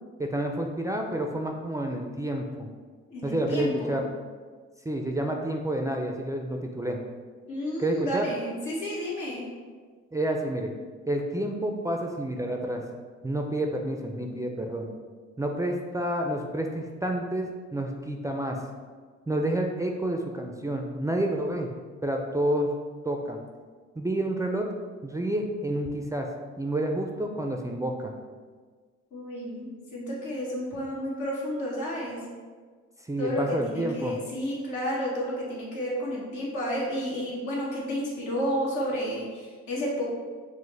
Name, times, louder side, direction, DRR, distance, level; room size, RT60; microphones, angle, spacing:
voice 1, 0.2-2.7 3.2-4.0 4.9-7.0 7.8-8.2 10.1-10.7 11.1-12.8 13.2-14.9 15.4-18.6 19.3-21.7 22.0-22.7 23.0-23.4 24.0-24.7 25.0-26.3 26.6-28.1 33.1-34.1, right 1 dB, 10° right, 2 dB, 0.3 m, -29 dB
voice 2, 3.1-4.0 7.5-9.5 29.1-32.2 33.2-40.0, equal, 80° left, -5 dB, 1.4 m, -31 dB
6.1 x 2.1 x 3.2 m, 1.5 s
cardioid pair, 90°, 30 cm